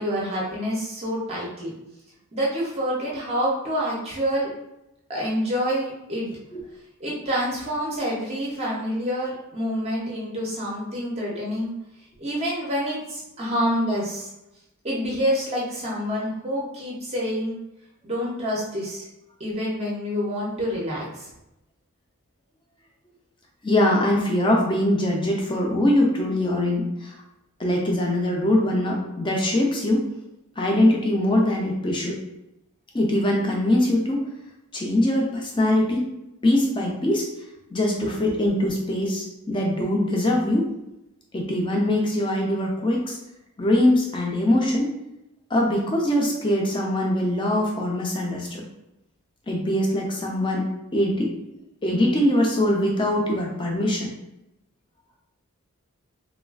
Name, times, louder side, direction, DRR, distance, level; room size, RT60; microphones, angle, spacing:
voice 1, 0.0-1.7 2.3-4.5 5.1-6.3 7.0-11.7 12.2-14.3 14.8-17.6 18.0-19.1 19.4-21.3, equal, 30° right, -4 dB, 0.5 m, -27 dB
voice 2, 23.6-27.1 27.6-30.1 30.6-32.2 32.9-34.2 34.7-36.1 36.4-37.3 37.7-40.7 41.3-43.2 43.6-44.9 45.5-48.6 49.5-54.1, left 1 dB, 20° left, -1 dB, 0.5 m, -22 dB
3.1 x 2.3 x 2.3 m, 0.90 s
head